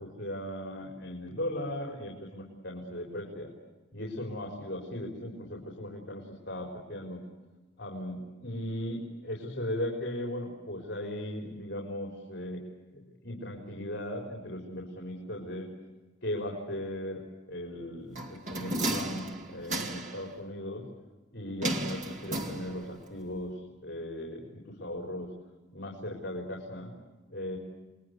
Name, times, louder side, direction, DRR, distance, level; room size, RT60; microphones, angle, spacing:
voice 1, 0.0-3.5 3.9-7.2 7.8-12.6 12.9-15.7 16.2-20.8 21.3-23.5 23.8-25.3 25.7-26.9 27.3-27.6, left 1 dB, 65° left, -1 dB, 4.6 m, -37 dB
sound 1, 18.2-20.3 21.6-23.1 23.3-23.4, right 1 dB, 40° right, 2.4 m, -34 dB
29.5 x 22.0 x 8.2 m, 1.2 s
head